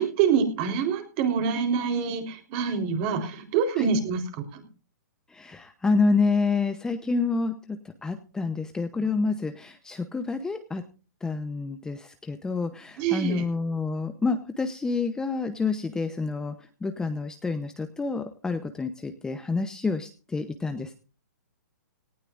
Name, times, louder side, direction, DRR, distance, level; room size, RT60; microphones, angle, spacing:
voice 1, 0.0-4.6 13.0-13.5, right 6 dB, 35° right, 6 dB, 3.8 m, -26 dB
voice 2, 5.3-10.8 11.2-16.5 16.8-20.9, left 4 dB, 5° left, 8 dB, 0.8 m, -28 dB
18.5 x 16.0 x 2.5 m, 0.36 s
hypercardioid pair, 150°, 10 cm